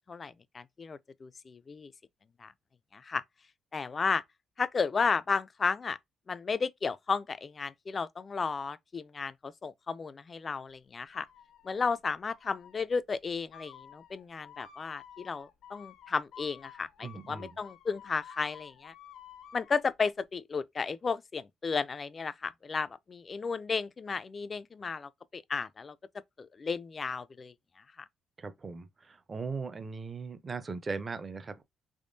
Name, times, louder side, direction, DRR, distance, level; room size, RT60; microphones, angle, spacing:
voice 1, 0.1-1.9 2.4-2.5 2.9-3.2 3.7-4.2 4.6-6.0 6.3-11.3 11.6-18.9 19.5-26.0 26.4-27.5 28.0-28.1, left 5 dB, 35° left, 0.3 m, -33 dB
sound 1, 11.1-11.9 12.3-12.8 13.5-19.8, left 8 dB, 80° left, 0.6 m, -52 dB
voice 2, 17.0-17.5 28.4-31.6, right 4 dB, 35° right, 0.5 m, -39 dB
3.5 x 3.2 x 2.6 m
cardioid pair, 90°, 0 cm